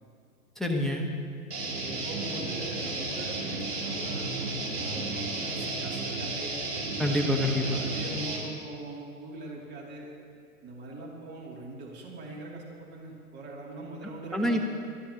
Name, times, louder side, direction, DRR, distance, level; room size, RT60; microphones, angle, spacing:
voice 1, 0.6-1.1 7.0-7.8 14.3-14.7, left 1 dB, ahead, 0 dB, 1.1 m, -27 dB
Guitar, 1.5-8.4, right 2 dB, 85° right, 4.2 m, -33 dB
voice 2, 1.8-6.6 7.0-10.1 10.6-14.6, right 2 dB, 25° right, -3 dB, 2.7 m, -42 dB
27.0 x 11.5 x 2.9 m, 2.3 s
figure-of-eight pair, 110°, 45 cm